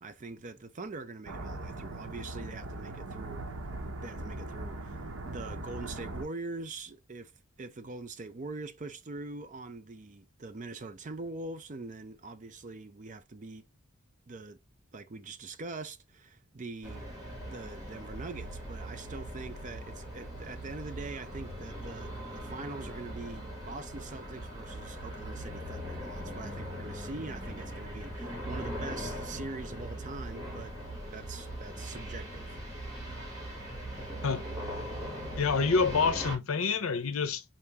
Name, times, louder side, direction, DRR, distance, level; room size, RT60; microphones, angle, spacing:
voice 1, 0.0-3.5 4.0-5.0 5.3-7.3 7.6-13.6 14.3-14.6 14.9-17.1 17.5-30.8 31.1-32.6, right 3 dB, 35° right, 0.5 m, -43 dB
sound 1, 1.3-6.3, right 2 dB, 75° right, 0.9 m, -40 dB
sound 2, 16.8-36.4, equal, 15° right, 2.3 m, -40 dB
voice 2, 35.4-37.4, left 4 dB, 75° left, 0.7 m, -27 dB
4.3 x 2.8 x 3.4 m
head